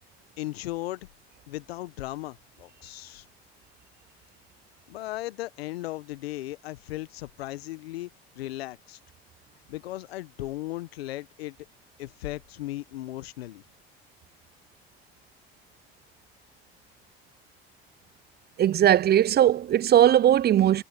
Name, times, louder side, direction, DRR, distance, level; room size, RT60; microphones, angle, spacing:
voice 1, 0.4-1.1 1.5-3.3 4.9-8.1 8.3-9.0 9.7-11.6 12.0-13.6, left 16 dB, 85° left, 1.0 m, -36 dB
voice 2, 18.6-20.8, right 11 dB, 35° right, 0.5 m, -19 dB
hypercardioid pair, 65°, 30 cm